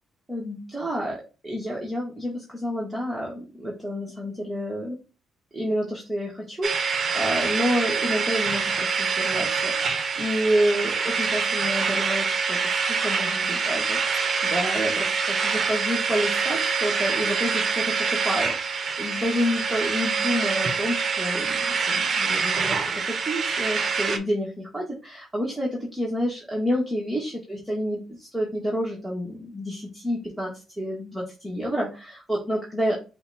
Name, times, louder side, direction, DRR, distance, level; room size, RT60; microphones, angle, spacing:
voice 1, 0.3-1.2 1.4-5.0 5.5-9.9 10.2-14.2 14.5-33.0, equal, 10° right, -4 dB, 1.4 m, -29 dB
sound 1, 6.6-24.2, right 5 dB, 45° right, 0.8 m, -25 dB
5.5 x 2.2 x 4.1 m, 0.31 s
cardioid pair, 90°, 0 cm